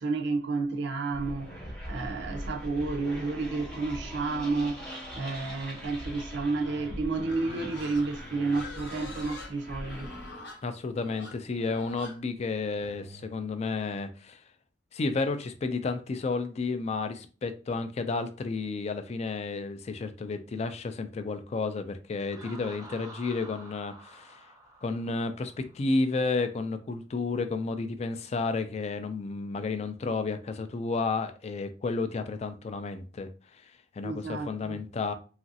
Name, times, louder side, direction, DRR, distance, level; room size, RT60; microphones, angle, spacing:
voice 1, 0.0-4.8 5.2-10.1 34.0-34.8, right 3 dB, 60° right, 0.5 m, -31 dB
sound 1, 1.1-10.5, equal, 5° left, 0.9 m, -41 dB
Livestock farm animals working animals, 7.2-13.3, left 2 dB, 60° left, 0.8 m, -45 dB
voice 2, 10.6-14.4 14.9-24.3 24.8-33.3 33.6-33.7 34.0-35.1, left 3 dB, 35° left, 0.3 m, -31 dB
Laughter, 22.3-26.0, right 1 dB, 20° right, 0.6 m, -49 dB
3.0 x 2.4 x 2.7 m
head